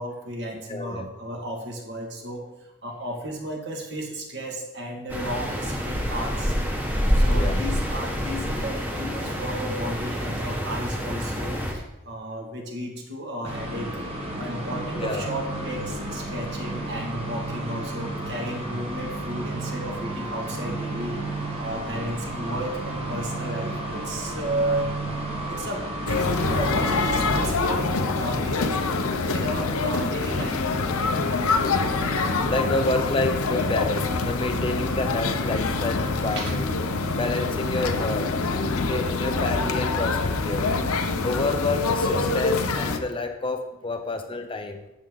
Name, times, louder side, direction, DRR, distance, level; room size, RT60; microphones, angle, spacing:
voice 1, 0.0-2.4 2.8-6.5 7.1-13.9 14.4-21.2 21.6-24.9 25.5-28.9 29.3-30.6 31.0-31.1 36.4-36.6, right 1 dB, 50° right, 0 dB, 2.1 m, -33 dB
voice 2, 0.7-1.1 7.3-7.6 15.0-15.3 31.4-31.9 32.5-36.7 37.1-38.3 38.8-44.8, left 2 dB, 25° left, 6 dB, 0.6 m, -29 dB
sound 1, 5.1-11.7, equal, 10° right, 1.3 m, -26 dB
sound 2, 13.4-27.5, right 2 dB, 25° right, 1.6 m, -32 dB
sound 3, 26.1-43.0, left 3 dB, 85° left, 0.9 m, -25 dB
12.5 x 8.2 x 4.0 m, 0.96 s
head